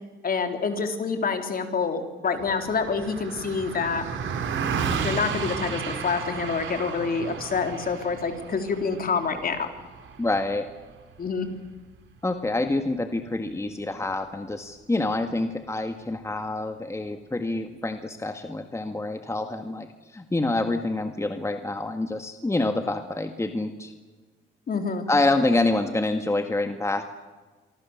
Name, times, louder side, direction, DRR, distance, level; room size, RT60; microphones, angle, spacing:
voice 1, 0.2-4.1 5.0-9.7 11.2-11.5 24.7-25.1, left 5 dB, 45° left, 6 dB, 3.9 m, -27 dB
Car passing by, 2.3-12.0, right 6 dB, 75° right, 4.3 m, -33 dB
voice 2, 10.2-10.7 12.2-19.9 20.1-23.9 25.1-27.1, left 2 dB, 15° left, 7 dB, 1.9 m, -27 dB
27.0 x 24.5 x 7.4 m, 1.3 s
cardioid pair, 90°, 20 cm